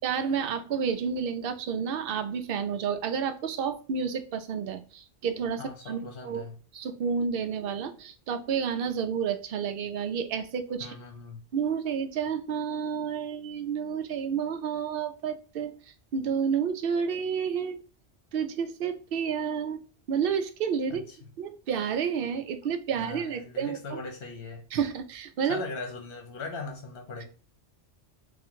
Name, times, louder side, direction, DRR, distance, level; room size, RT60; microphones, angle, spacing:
voice 1, 0.0-6.0 6.2-6.5 6.7-10.9 11.5-15.8 16.1-17.8 18.3-19.8 20.1-21.0 21.4-23.8 24.7-25.6, right 7 dB, 60° right, 8 dB, 0.7 m, -30 dB
voice 2, 5.6-6.6 10.8-11.4 20.9-21.2 22.9-24.6 25.5-27.2, left 4 dB, 55° left, 3 dB, 1.0 m, -39 dB
3.6 x 2.5 x 4.4 m, 0.38 s
omnidirectional pair, 1.2 m